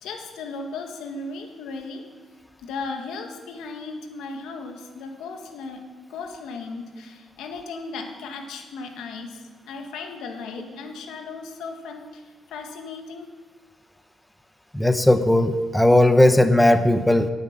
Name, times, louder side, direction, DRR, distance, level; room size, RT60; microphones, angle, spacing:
voice 1, 0.0-2.0 2.6-13.3, left 4 dB, 85° left, 4 dB, 1.7 m, -36 dB
voice 2, 14.7-17.3, left 1 dB, 5° left, 9 dB, 0.7 m, -17 dB
9.6 x 7.8 x 9.3 m, 1.5 s
cardioid pair, 90°, 0 cm